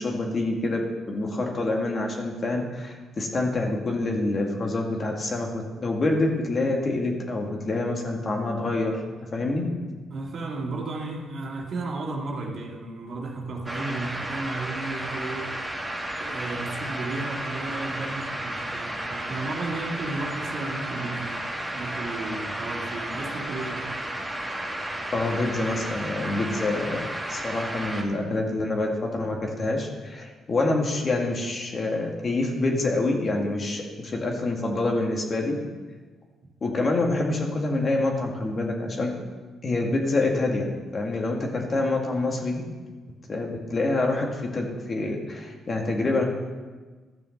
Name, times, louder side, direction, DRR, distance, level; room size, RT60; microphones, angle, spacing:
voice 1, 0.0-9.0 9.3-9.7 25.1-35.6 36.6-39.1 39.6-42.6 43.3-46.2, left 2 dB, 40° left, 1 dB, 2.1 m, -26 dB
voice 2, 10.1-15.5 16.2-21.4 21.7-23.9, right 3 dB, 55° right, -1 dB, 2.2 m, -33 dB
sound 1, 13.7-28.0, right 1 dB, 5° right, 2.1 m, -33 dB
13.0 x 6.9 x 6.6 m, 1.4 s
cardioid pair, 90°, 0 cm